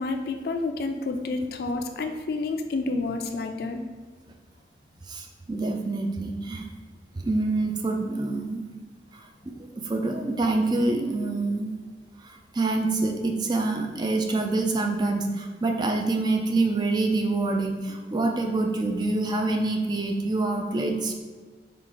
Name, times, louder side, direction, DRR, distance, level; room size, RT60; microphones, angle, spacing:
voice 1, 0.0-3.8, left 3 dB, 60° left, 5 dB, 0.4 m, -29 dB
voice 2, 5.1-6.7 7.2-8.7 9.1-9.3 9.5-11.7 12.2-21.1, right 2 dB, 25° right, 3 dB, 0.3 m, -26 dB
3.8 x 2.4 x 4.6 m, 1.5 s
head